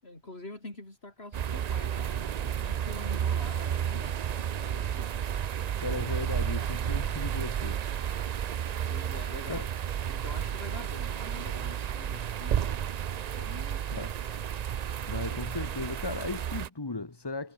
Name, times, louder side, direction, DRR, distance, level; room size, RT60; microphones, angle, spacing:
voice 1, 0.0-5.4 8.9-9.7 10.1-12.9 13.3-14.4, left 2 dB, 85° left, 5.8 m, -46 dB
sound 1, 1.3-16.7, right 9 dB, 50° right, 0.5 m, -32 dB
voice 2, 5.8-7.8 9.5-9.7 13.9-14.1 15.1-17.5, left 3 dB, 25° left, 1.2 m, -36 dB
omnidirectional pair, 1.0 m